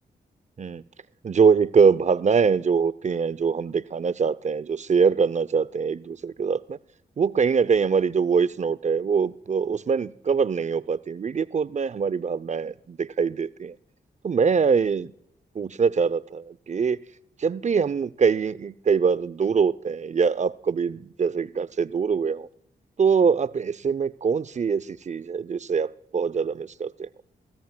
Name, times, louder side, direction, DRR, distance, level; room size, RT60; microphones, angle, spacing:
voice 1, 1.2-6.8 7.2-13.7 14.2-15.1 15.6-17.0 17.4-22.5 23.0-27.1, right 6 dB, 40° right, 19 dB, 0.6 m, -23 dB
23.0 x 14.5 x 2.3 m, 0.75 s
supercardioid pair, 50°, 18 cm